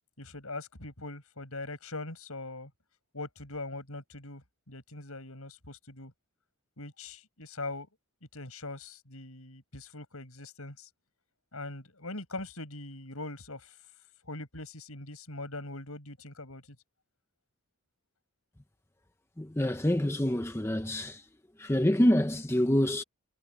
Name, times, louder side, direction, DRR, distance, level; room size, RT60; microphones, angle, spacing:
voice 1, 0.2-2.7 3.1-6.1 6.8-7.9 8.3-10.9 11.5-13.8 14.2-16.6, left 2 dB, 70° left, 7.0 m, -42 dB
voice 2, 19.4-21.2 21.6-23.0, left 1 dB, 10° left, 0.8 m, -26 dB
head